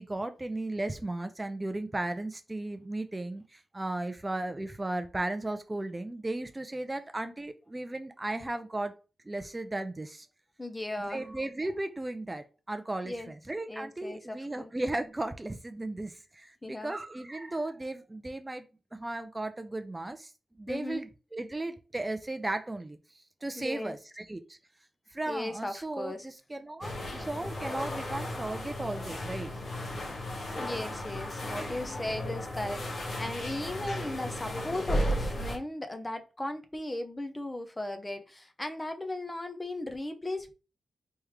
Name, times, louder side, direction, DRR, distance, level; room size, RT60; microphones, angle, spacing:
voice 1, 0.0-9.0 9.3-10.3 11.0-18.7 18.9-20.3 20.6-23.0 23.4-24.6 25.1-29.5, right 2 dB, 20° right, 0.4 m, -35 dB
voice 2, 10.6-11.3 13.0-13.3 13.7-14.7 16.6-17.0 20.7-21.0 23.6-24.0 25.3-26.3 30.6-40.5, left 1 dB, 20° left, 0.7 m, -37 dB
sound 1, 26.8-35.6, equal, 60° left, 1.4 m, -35 dB
3.5 x 3.2 x 3.1 m
cardioid pair, 65°, 0 cm